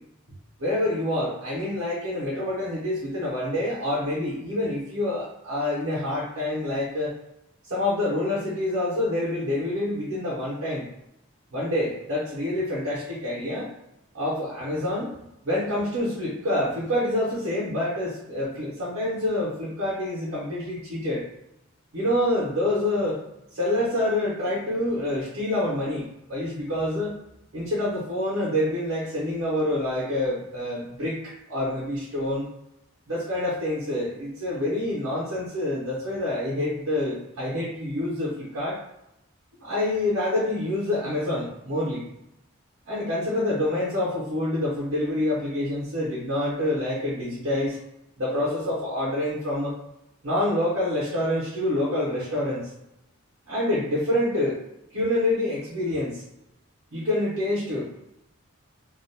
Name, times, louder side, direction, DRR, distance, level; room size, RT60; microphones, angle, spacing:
voice 1, 0.6-7.1 7.7-10.9 11.5-13.7 14.1-15.1 15.4-21.2 21.9-23.2 23.5-27.2 27.5-32.4 33.1-38.8 39.6-42.1 42.9-47.8 48.2-49.7 50.2-52.7 53.5-54.6 54.9-56.2 56.9-57.8, left 1 dB, 85° right, -7 dB, 0.9 m, -27 dB
2.6 x 2.1 x 2.7 m, 0.84 s
head